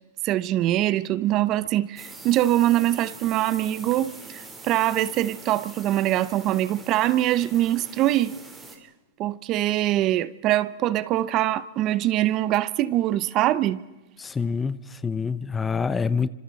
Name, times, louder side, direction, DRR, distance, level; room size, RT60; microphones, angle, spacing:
voice 1, 0.2-8.3 9.2-13.8, right 14 dB, 35° right, 0.8 m, -23 dB
sound 1, 2.0-8.8, right 3 dB, 10° right, 3.8 m, -44 dB
voice 2, 14.2-16.3, left 5 dB, 10° left, 0.6 m, -26 dB
29.0 x 26.0 x 4.1 m
supercardioid pair, 150°, 0 cm